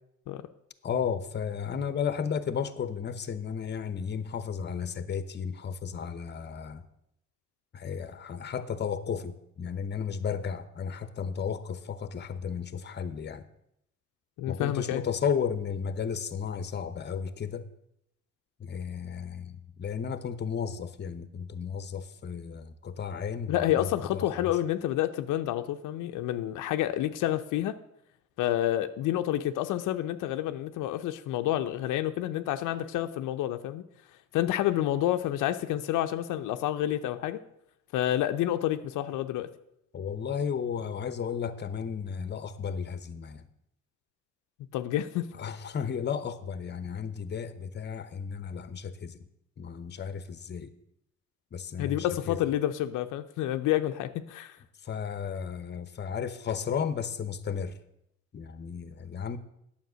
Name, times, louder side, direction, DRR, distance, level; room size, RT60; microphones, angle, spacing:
voice 1, 0.8-6.8 7.7-13.4 14.5-17.7 18.6-24.5 39.9-43.5 45.4-49.2 49.6-50.7 51.5-52.4 54.8-57.8 58.3-59.4, left 7 dB, 35° left, 0.8 m, -34 dB
voice 2, 14.4-15.0 23.5-27.8 28.4-33.8 34.3-37.4 37.9-39.5 44.7-45.3 51.8-54.6, left 13 dB, 85° left, 0.6 m, -29 dB
9.4 x 7.2 x 6.1 m
cardioid pair, 90°, 30 cm